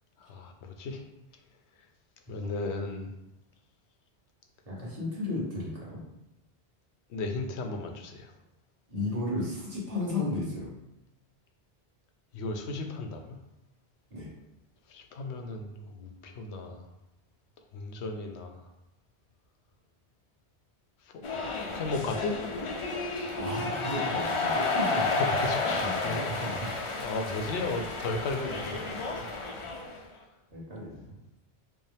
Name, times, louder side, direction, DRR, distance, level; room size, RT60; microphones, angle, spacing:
voice 1, 0.3-1.0 2.3-3.1 7.1-8.3 12.3-13.4 14.9-16.8 17.7-18.6 21.6-22.4 25.4-26.3 27.0-29.3, left 3 dB, 90° left, 4 dB, 0.9 m, -35 dB
voice 2, 4.7-6.0 8.9-10.7 14.1-14.3 23.4-25.1 25.6-26.7 30.5-31.2, left 2 dB, 35° right, -6 dB, 1.3 m, -34 dB
sound 1, 21.2-30.0, left 3 dB, 50° left, 0.3 m, -31 dB
5.1 x 2.0 x 3.4 m, 0.87 s
omnidirectional pair, 1.1 m